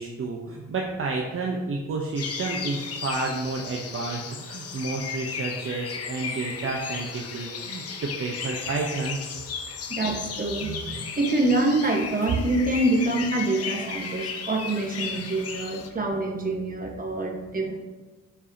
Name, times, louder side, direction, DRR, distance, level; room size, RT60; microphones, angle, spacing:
voice 1, 0.0-9.2, right 3 dB, 45° right, -1 dB, 1.0 m, -30 dB
sound 1, 2.2-15.9, left 6 dB, 50° left, 1.1 m, -35 dB
voice 2, 9.9-17.8, right 2 dB, 30° right, 1 dB, 1.5 m, -26 dB
12.0 x 4.7 x 2.9 m, 1.2 s
cardioid pair, 90°, 30 cm